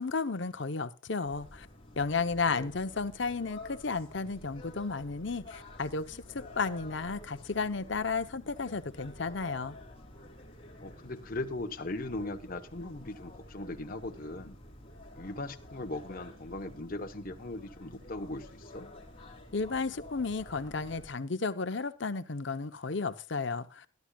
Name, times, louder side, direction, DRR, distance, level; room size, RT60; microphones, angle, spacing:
voice 1, 0.0-1.7 2.0-9.8 19.5-23.8, left 4 dB, 60° left, 0.8 m, -33 dB
sound 1, 1.2-21.1, left 1 dB, 25° left, 3.2 m, -50 dB
voice 2, 2.1-2.7 10.8-14.5 15.2-18.9, left 2 dB, 45° left, 1.1 m, -39 dB
21.5 x 11.5 x 2.4 m
head